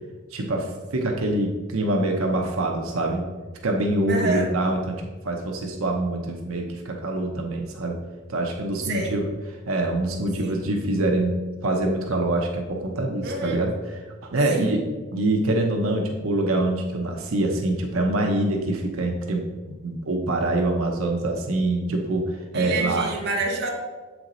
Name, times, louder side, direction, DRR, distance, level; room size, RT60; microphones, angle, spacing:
voice 1, 0.3-3.2 3.6-8.0 8.3-9.2 9.7-11.4 11.6-13.7 14.2-14.8 15.1-19.4 19.8-23.1, right 2 dB, 90° right, 1 dB, 0.8 m, -25 dB
voice 2, 4.1-4.5 8.8-9.2 10.4-10.6 13.2-13.6 14.5-14.7 22.5-23.7, right 2 dB, 50° right, 0 dB, 1.0 m, -28 dB
7.4 x 4.6 x 3.9 m, 1.3 s
head